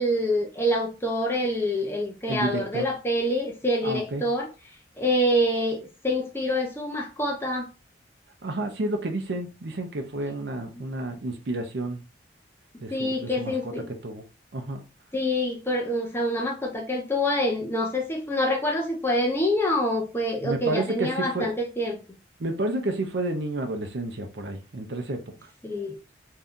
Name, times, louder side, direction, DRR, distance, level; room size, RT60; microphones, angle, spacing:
voice 1, 0.0-4.5 5.0-7.7 12.9-13.9 15.1-22.0 25.6-26.0, left 1 dB, 10° left, 0.5 m, -26 dB
voice 2, 2.3-2.9 3.8-4.2 8.4-12.0 12.8-13.7 14.0-14.2 14.5-14.8 20.4-21.5 22.4-25.2, right 2 dB, 65° right, 0.6 m, -30 dB
2.7 x 2.3 x 3.6 m
head